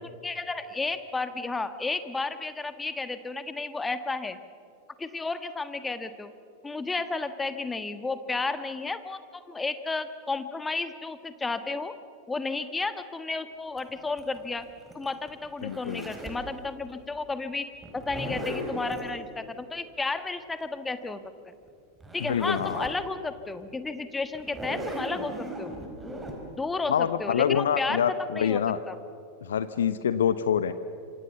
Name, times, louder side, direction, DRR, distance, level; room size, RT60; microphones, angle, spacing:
voice 1, 0.2-4.4 5.0-6.3 6.6-11.9 12.3-14.7 14.9-17.7 17.9-21.5 22.1-25.7 26.6-29.0, left 3 dB, 10° left, 11 dB, 1.4 m, -32 dB
Zipper (clothing), 13.8-16.5 17.8-19.1 21.7-21.8 22.0-23.0 23.5-23.6 24.3-26.3, equal, 10° right, 4.7 m, -37 dB
voice 2, 15.6-16.1 22.2-22.9 26.9-28.8 29.4-30.7, left 8 dB, 65° left, 13 dB, 0.8 m, -26 dB
26.5 x 26.0 x 7.0 m, 2.5 s
figure-of-eight pair, 90°, 0 cm